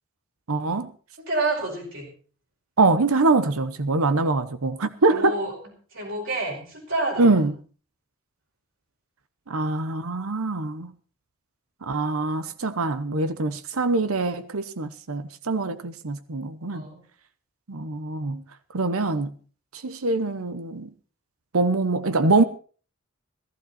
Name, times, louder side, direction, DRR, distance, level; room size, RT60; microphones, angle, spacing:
voice 1, 0.5-0.9 2.8-5.4 7.2-7.5 9.5-10.9 11.8-16.9 17.7-18.4 18.7-19.3 19.8-20.9 21.5-22.4, right 3 dB, 90° right, 0.9 m, -24 dB
voice 2, 1.2-2.1 5.1-5.5 5.9-7.4 16.7-17.0, right 2 dB, 65° right, 5.0 m, -29 dB
15.5 x 14.5 x 4.2 m
head